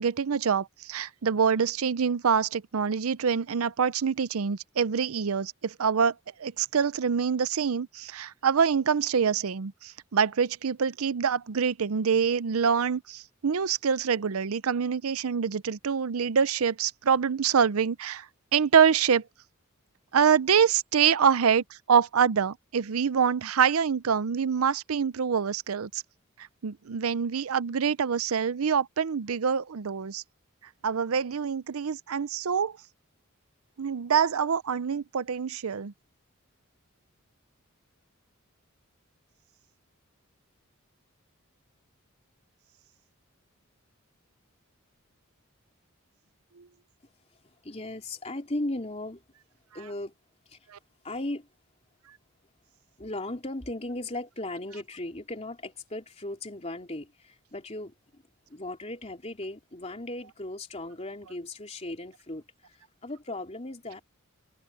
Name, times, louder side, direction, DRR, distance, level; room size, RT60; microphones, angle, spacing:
voice 1, 0.0-18.3 18.5-19.2 20.1-26.0 26.6-30.2 30.8-32.8 33.8-35.9 46.6-46.7 50.7-50.8, right 7 dB, 80° right, 0.6 m, -25 dB
voice 2, 47.4-49.2 49.7-50.1 50.5-50.6 51.0-51.5 53.0-58.2 58.5-64.0, left 1 dB, 30° left, 3.5 m, -37 dB
open air
head